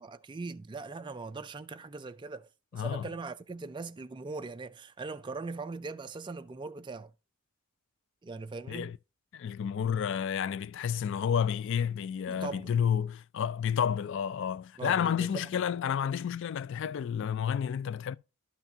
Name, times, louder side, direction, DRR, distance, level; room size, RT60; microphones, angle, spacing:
voice 1, 0.0-7.1 8.2-8.9 12.3-12.7 14.8-15.5, right 4 dB, 20° right, 0.3 m, -40 dB
voice 2, 2.7-3.1 8.7-9.0 9.3-18.2, left 8 dB, 60° left, 0.3 m, -30 dB
11.5 x 5.8 x 2.7 m
head